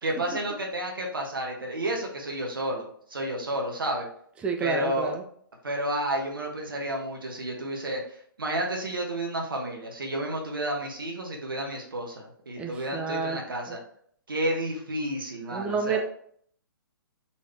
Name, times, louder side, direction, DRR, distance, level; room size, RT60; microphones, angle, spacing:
voice 1, 0.0-4.1 4.6-5.1 5.6-8.0 8.4-13.8 14.3-16.0, right 1 dB, 70° right, 0 dB, 1.0 m, -31 dB
voice 2, 4.4-5.2 12.6-13.4 13.7-13.8 15.5-16.0, right 5 dB, 10° right, 4 dB, 0.4 m, -30 dB
4.1 x 3.1 x 3.3 m, 0.62 s
figure-of-eight pair, 120°, 12 cm